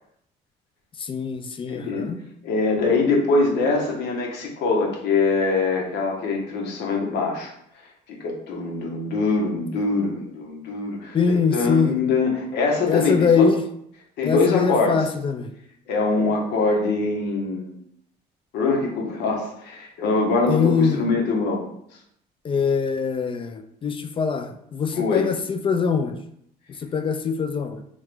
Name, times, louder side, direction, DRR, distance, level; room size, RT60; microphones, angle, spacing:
voice 1, 1.0-2.2 11.1-12.0 12.9-13.6 14.2-15.5 20.5-21.0 22.4-26.2 26.8-27.8, left 5 dB, 30° left, 8 dB, 0.4 m, -23 dB
voice 2, 1.7-2.1 2.4-7.5 8.1-13.5 14.2-15.0 15.9-17.8 18.5-21.6 24.9-25.3, left 3 dB, 80° left, 0 dB, 1.2 m, -23 dB
3.7 x 3.2 x 3.3 m, 0.72 s
cardioid pair, 110°, 17 cm